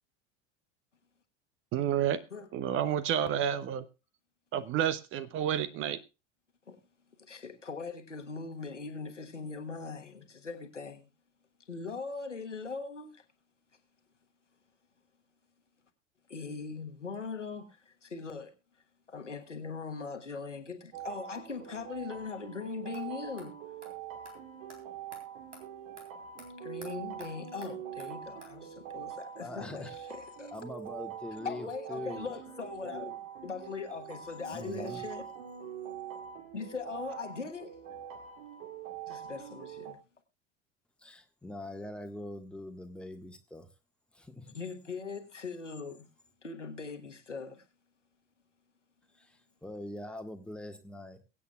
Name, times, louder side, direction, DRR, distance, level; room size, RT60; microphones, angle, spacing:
voice 1, 1.7-2.2 2.5-3.8 4.5-6.0, right 9 dB, 35° right, 0.8 m, -30 dB
voice 2, 7.2-11.1 11.7-13.2 16.3-18.5 19.1-23.5 26.6-30.5 31.4-35.2 36.5-37.7 39.1-40.0 44.5-46.1 46.4-47.6, left 4 dB, 85° left, 1.4 m, -40 dB
sound 1, 20.9-39.9, right 9 dB, 55° right, 1.9 m, -44 dB
sound 2, 22.9-23.0 23.4-23.5 23.8-23.9 24.2-24.4 24.7-24.8 25.1-25.2 25.5-25.6 26.0-26.1 26.4-26.5 26.8-26.9 27.2-27.3 27.6-27.7 28.0-28.1 28.4-28.5, right 2 dB, 80° right, 3.1 m, -49 dB
voice 3, 29.4-29.9 30.5-32.3 34.5-35.0 41.0-43.7 44.1-44.5 49.2-51.2, left 1 dB, 5° left, 1.5 m, -43 dB
22.5 x 8.5 x 2.3 m
figure-of-eight pair, 75°, 36 cm